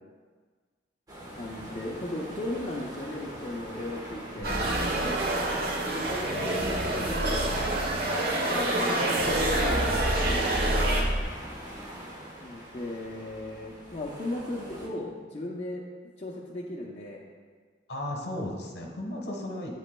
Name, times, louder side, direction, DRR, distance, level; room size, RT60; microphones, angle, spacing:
sound 1, 1.1-14.9, right 1 dB, 20° right, 1.2 m, -45 dB
voice 1, 1.3-4.6 5.9-7.5 8.3-11.0 12.4-15.9 16.2-17.2, left 1 dB, 35° left, -4 dB, 0.6 m, -36 dB
voice 2, 4.4-5.1 6.4-7.6 17.9-19.7, left 1 dB, 65° left, 1 dB, 1.2 m, -37 dB
sound 2, 4.4-11.0, right 1 dB, 55° right, 1.1 m, -28 dB
sound 3, 4.4-11.2, equal, 85° right, 0.8 m, -33 dB
8.3 x 8.2 x 2.2 m, 1.5 s
head